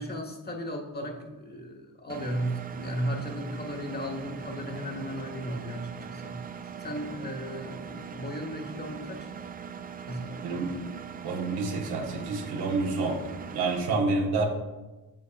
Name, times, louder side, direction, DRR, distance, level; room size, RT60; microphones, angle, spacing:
voice 1, 0.0-6.4 6.8-9.3 10.1-10.4, equal, 25° left, 3 dB, 1.2 m, -35 dB
Engine, 2.1-13.8, right 7 dB, 25° right, 0.3 m, -41 dB
voice 2, 11.2-13.2 13.5-14.5, right 3 dB, 90° right, 1 dB, 1.1 m, -28 dB
8.9 x 6.9 x 2.3 m, 1.1 s
cardioid pair, 80°, 37 cm